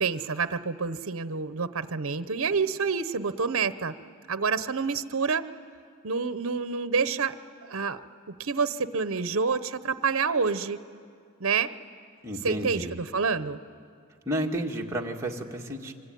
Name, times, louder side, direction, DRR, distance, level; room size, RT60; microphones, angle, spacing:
voice 1, 0.0-3.9 4.3-5.4 6.0-7.3 7.6-8.0 8.4-10.8 11.4-11.7 12.4-13.6, right 5 dB, 65° right, 13 dB, 0.8 m, -28 dB
voice 2, 12.2-13.0 14.3-15.9, right 1 dB, 15° right, -1 dB, 1.7 m, -31 dB
24.5 x 24.5 x 9.2 m, 2.2 s
head